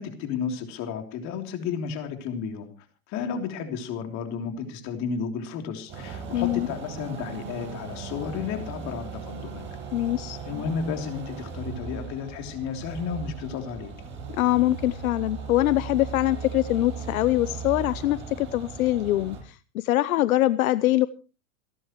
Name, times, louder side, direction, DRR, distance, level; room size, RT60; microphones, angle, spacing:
voice 1, 0.0-2.7 3.1-9.7 10.4-13.9, left 6 dB, 40° left, 5 dB, 3.2 m, -32 dB
sound 1, 5.9-19.4, right 5 dB, 25° right, 8.0 m, -38 dB
voice 2, 6.3-6.7 9.9-10.4 14.3-21.1, left 15 dB, 80° left, 16 dB, 0.8 m, -23 dB
28.0 x 11.0 x 3.1 m, 0.34 s
supercardioid pair, 145°, 42 cm